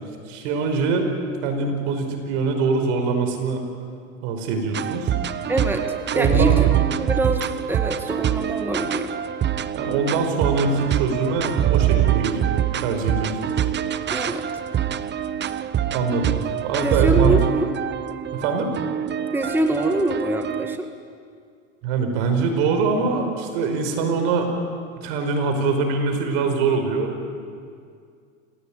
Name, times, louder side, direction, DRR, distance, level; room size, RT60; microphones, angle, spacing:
voice 1, 0.3-1.1 1.4-3.6 4.2-5.1 6.1-6.6 9.7-13.5 15.8-16.3 16.6-17.3 18.3-18.7 21.8-24.5 25.0-27.1, right 4 dB, 65° right, 5 dB, 5.3 m, -23 dB
sound 1, 4.7-20.8, right 11 dB, 30° right, 1.0 m, -24 dB
voice 2, 5.5-5.9 6.1-9.1 14.1-14.5 16.8-17.7 19.3-20.9, right 1 dB, 5° right, 5 dB, 1.8 m, -25 dB
28.5 x 17.0 x 9.0 m, 2.3 s
hypercardioid pair, 100°, 38 cm